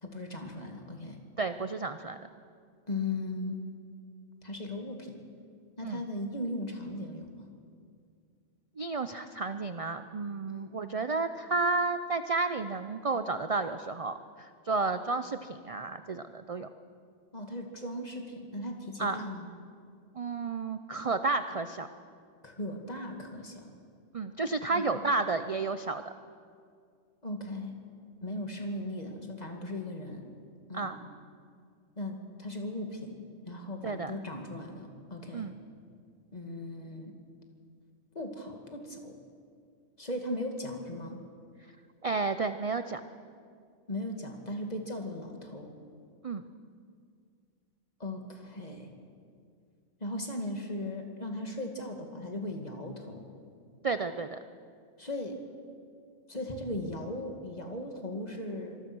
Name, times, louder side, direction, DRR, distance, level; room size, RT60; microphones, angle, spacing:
voice 1, 0.0-1.2 2.9-3.6 4.4-5.3 5.8-7.5 10.5-10.7 17.3-19.5 22.4-23.7 24.7-25.0 27.2-27.7 28.2-30.3 30.7-30.9 32.0-33.2 33.5-35.5 36.3-37.1 38.1-39.1 40.0-41.2 43.9-45.7 48.0-48.9 50.0-53.3 55.0-55.4 56.3-58.8, left 1 dB, 30° left, 3 dB, 2.5 m, -38 dB
voice 2, 1.4-2.2 5.8-6.0 8.8-16.7 19.0-19.3 20.2-21.9 24.1-26.1 30.7-31.0 33.8-34.1 35.3-35.6 42.0-43.0 46.2-46.4 53.8-54.4, right 3 dB, 35° right, 10 dB, 0.6 m, -32 dB
25.5 x 20.0 x 6.2 m, 2.2 s
omnidirectional pair, 1.3 m